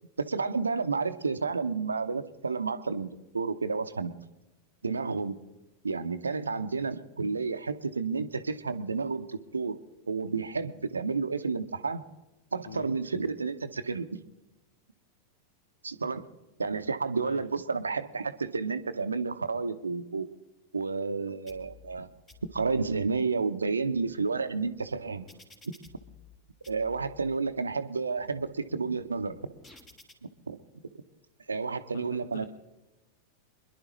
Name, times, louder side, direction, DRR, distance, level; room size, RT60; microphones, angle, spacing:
voice 1, 0.2-4.1 4.8-5.4 5.8-9.8 10.1-12.0 12.5-14.2 15.8-16.2 16.6-20.3 20.7-22.1 22.5-25.3 26.7-29.4 30.2-30.6 31.5-32.5, right 4 dB, 75° right, 11 dB, 0.7 m, -31 dB
sound 1, 21.5-22.0 22.3-23.0 23.6-26.4 26.6-27.4 27.9-30.1, left 5 dB, 20° left, 2.0 m, -55 dB
voice 2, 31.9-32.5, left 7 dB, 65° left, 9 dB, 0.7 m, -43 dB
26.0 x 11.0 x 3.1 m, 1.0 s
figure-of-eight pair, 90°, 0 cm